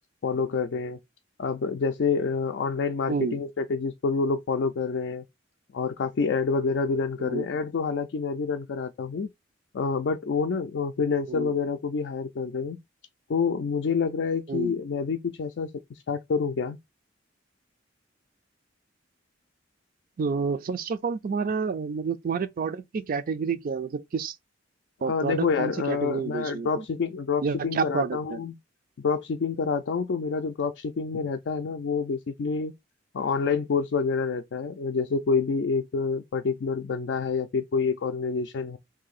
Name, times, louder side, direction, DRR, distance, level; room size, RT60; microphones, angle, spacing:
voice 1, 0.2-1.0 1.4-5.2 5.7-9.3 9.7-12.8 13.3-16.8 25.0-28.6 29.0-32.7 33.1-38.8, left 5 dB, 65° left, 0.4 m, -27 dB
voice 2, 20.2-24.4 25.0-26.8 27.4-28.4, right 5 dB, 50° right, 0.4 m, -29 dB
2.8 x 2.7 x 4.0 m
head